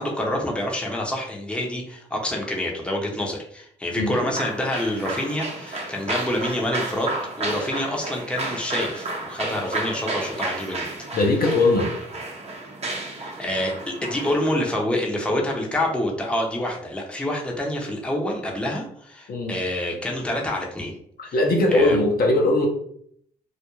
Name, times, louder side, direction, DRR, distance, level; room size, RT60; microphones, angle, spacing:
voice 1, 0.0-10.9 13.2-21.0 21.7-22.0, left 1 dB, 5° left, -1 dB, 0.7 m, -27 dB
sound 1, 4.3-14.6, right 2 dB, 30° right, 0.8 m, -32 dB
voice 2, 11.1-11.9 19.3-19.6 21.3-22.7, left 2 dB, 50° left, 0 dB, 0.6 m, -19 dB
2.3 x 2.1 x 3.0 m, 0.66 s
supercardioid pair, 55°, 20 cm